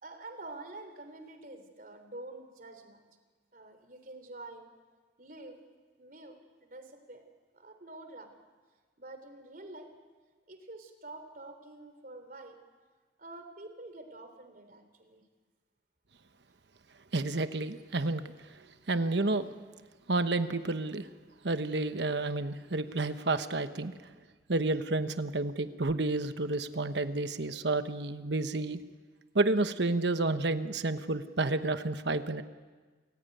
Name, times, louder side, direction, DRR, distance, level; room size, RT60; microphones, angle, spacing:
voice 1, 0.0-3.0 3.5-4.7 5.2-5.7 6.0-7.2 7.5-8.4 9.0-9.9 10.5-12.6 13.2-15.2, right 2 dB, 50° right, 7 dB, 3.5 m, -47 dB
voice 2, 17.1-18.2 18.9-19.5 20.1-21.1 21.4-23.9 24.5-28.8 29.3-32.4, right 2 dB, 70° right, 10 dB, 1.2 m, -30 dB
29.0 x 15.5 x 9.3 m, 1.4 s
head